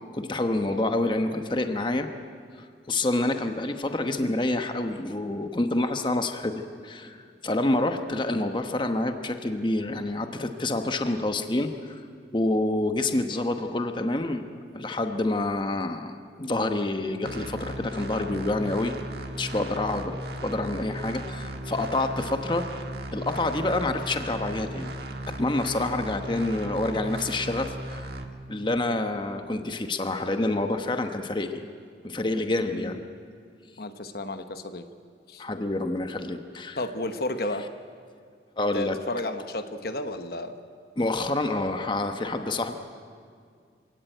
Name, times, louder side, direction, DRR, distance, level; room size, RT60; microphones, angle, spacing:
voice 1, 0.1-2.1 2.6-12.0 12.3-14.5 14.7-19.0 19.4-22.7 23.1-24.9 25.3-28.1 28.5-31.6 32.0-33.0 35.4-36.8 38.6-39.0 41.0-42.7, left 2 dB, 25° left, 6 dB, 1.0 m, -27 dB
sound 1, 17.2-28.2, right 1 dB, 65° right, 1.5 m, -36 dB
voice 2, 32.6-33.0 33.8-34.9 35.3-35.4 36.8-37.7 38.7-40.5, left 1 dB, 60° left, 8 dB, 1.1 m, -33 dB
26.0 x 17.0 x 9.2 m, 2.2 s
head